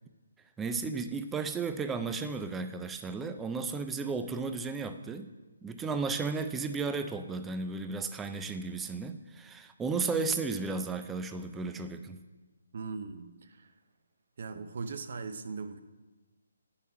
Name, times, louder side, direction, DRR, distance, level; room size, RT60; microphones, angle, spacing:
voice 1, 0.6-5.3 5.6-12.2, right 4 dB, 5° right, 9 dB, 0.3 m, -34 dB
voice 2, 12.7-13.7 14.4-15.8, right 4 dB, 50° right, 10 dB, 0.6 m, -39 dB
9.3 x 5.7 x 4.6 m, 1.2 s
hypercardioid pair, 170°, 0 cm